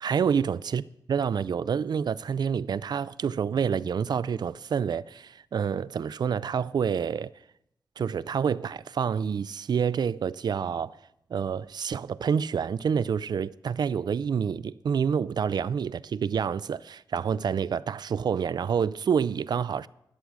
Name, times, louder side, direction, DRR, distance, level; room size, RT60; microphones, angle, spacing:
voice 1, 0.0-0.8 1.1-7.3 8.0-11.0 11.3-19.9, right 7 dB, 75° right, 0.4 m, -28 dB
11.5 x 8.5 x 6.3 m
wide cardioid pair, 140°, 7 cm